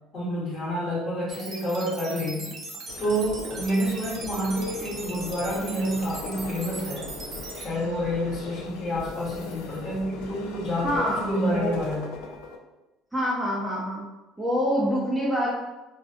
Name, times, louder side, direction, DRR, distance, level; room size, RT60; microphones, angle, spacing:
voice 1, 0.1-2.5 3.0-7.1 7.6-12.2, equal, 40° left, -5 dB, 1.0 m, -28 dB
sound 1, 1.3-7.7, right 3 dB, 50° right, 0.6 m, -39 dB
sound 2, 2.9-12.6, left 4 dB, 85° left, 0.3 m, -40 dB
voice 2, 10.8-11.8 13.1-14.1 14.4-15.5, equal, 5° right, -5 dB, 0.5 m, -26 dB
2.5 x 2.3 x 2.4 m, 1.0 s
cardioid pair, 120°, 0 cm